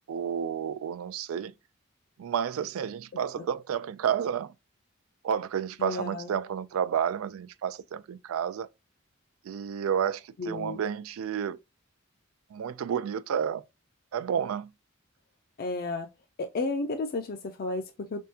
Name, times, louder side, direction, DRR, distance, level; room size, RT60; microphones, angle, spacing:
voice 1, 0.1-1.5 2.2-4.5 5.2-8.7 9.4-11.6 12.5-13.6 14.1-14.7, right 8 dB, 90° right, 0.3 m, -30 dB
voice 2, 5.8-6.3 10.4-10.8 15.6-16.1 16.4-18.2, left 3 dB, 45° left, 0.4 m, -32 dB
3.6 x 3.3 x 2.7 m
head